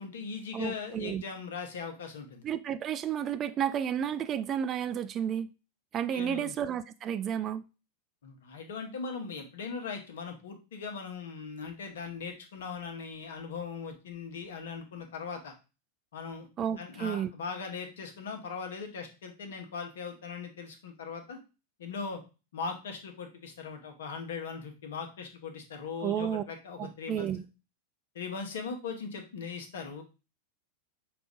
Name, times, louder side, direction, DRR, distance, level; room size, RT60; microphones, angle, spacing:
voice 1, 0.0-2.4 6.1-6.5 8.2-15.5 16.1-16.5 16.8-21.4 21.8-22.2 22.5-27.3 28.1-30.0, left 5 dB, 60° left, 1.0 m, -39 dB
voice 2, 0.5-1.2 2.4-5.5 5.9-7.6 16.6-17.3 26.0-26.4 26.8-27.4, right 9 dB, 30° right, 0.3 m, -32 dB
5.9 x 2.5 x 3.5 m
figure-of-eight pair, 90°, 0 cm